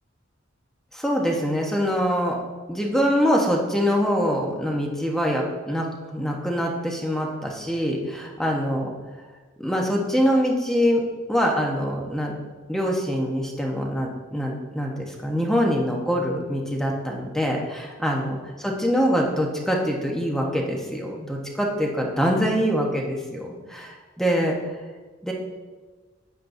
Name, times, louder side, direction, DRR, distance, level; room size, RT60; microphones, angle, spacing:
voice 1, 0.9-2.4 2.7-5.9 6.1-8.9 9.6-11.0 11.3-12.3 12.7-24.6 25.2-25.3, equal, ahead, -1 dB, 1.1 m, -24 dB
10.5 x 8.6 x 2.7 m, 1.3 s
head